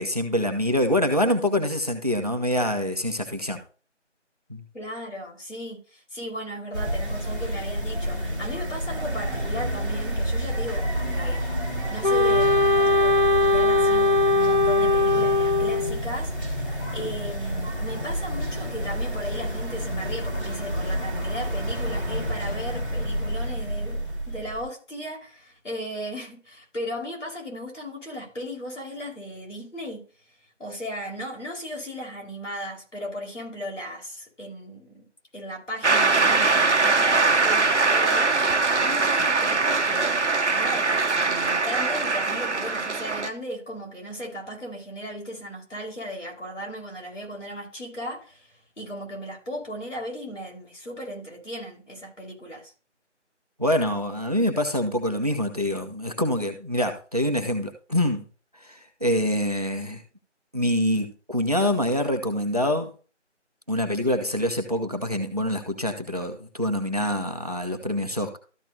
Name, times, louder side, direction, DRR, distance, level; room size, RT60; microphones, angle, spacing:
voice 1, 0.0-3.6 4.5-4.6 53.6-58.2 58.6-60.0 60.5-62.9 63.7-68.4, left 1 dB, 30° right, 0.9 m, -25 dB
voice 2, 4.7-11.4 11.9-12.6 13.0-16.3 16.9-30.0 30.6-35.1 35.3-38.4 38.8-52.7, equal, 80° left, 4.6 m, -36 dB
sound 1, 6.7-24.6, equal, 15° left, 2.0 m, -29 dB
Wind instrument woodwind instrument, 12.0-16.0, left 2 dB, 45° left, 0.4 m, -20 dB
Shout / Cheering / Applause, 35.8-43.3, right 3 dB, 70° right, 0.9 m, -22 dB
13.0 x 6.3 x 2.8 m
figure-of-eight pair, 180°, 36 cm